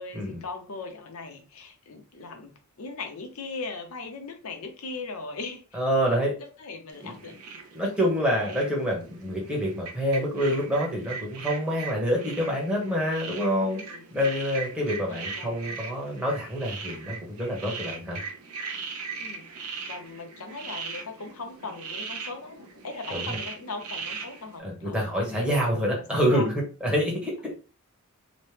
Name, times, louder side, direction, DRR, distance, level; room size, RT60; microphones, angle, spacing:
voice 1, 0.0-2.5 2.8-5.8 6.4-7.3 7.8-7.9 13.6-14.0 15.1-15.6 19.2-19.5 19.9-25.5 25.8-26.6, left 3 dB, 70° left, 4 dB, 0.7 m, -39 dB
voice 2, 5.7-6.3 7.0-7.1 7.7-13.8 14.1-18.2 23.1-23.4 24.6-26.5 26.8-27.5, equal, 5° right, -3 dB, 1.0 m, -27 dB
sound 1, 6.9-24.6, right 5 dB, 75° right, 0.6 m, -39 dB
2.9 x 2.1 x 3.2 m, 0.34 s
head